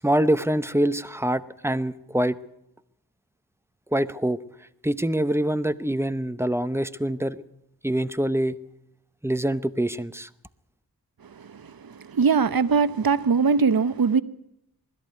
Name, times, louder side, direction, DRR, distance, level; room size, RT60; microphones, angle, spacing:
voice 1, 0.0-2.4 3.9-4.4 4.8-7.4 7.8-8.6 9.2-10.3, right 1 dB, 5° right, 0.8 m, -25 dB
voice 2, 11.2-14.2, right 5 dB, 65° right, 1.0 m, -22 dB
20.5 x 13.5 x 9.4 m
wide cardioid pair, 90°, 39 cm